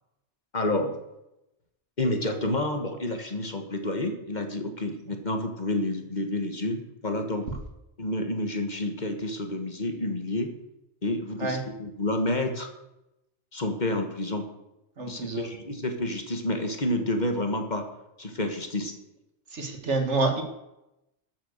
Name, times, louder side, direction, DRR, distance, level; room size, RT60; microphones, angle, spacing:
voice 1, 0.5-0.9 2.0-7.5 8.0-10.5 11.0-12.7 13.5-14.5 15.1-17.9 18.2-18.9, left 1 dB, 40° left, 5 dB, 1.7 m, -29 dB
voice 2, 15.0-15.5 19.5-20.4, right 3 dB, 75° right, 5 dB, 2.2 m, -27 dB
13.0 x 7.7 x 6.6 m, 0.88 s
omnidirectional pair, 1.2 m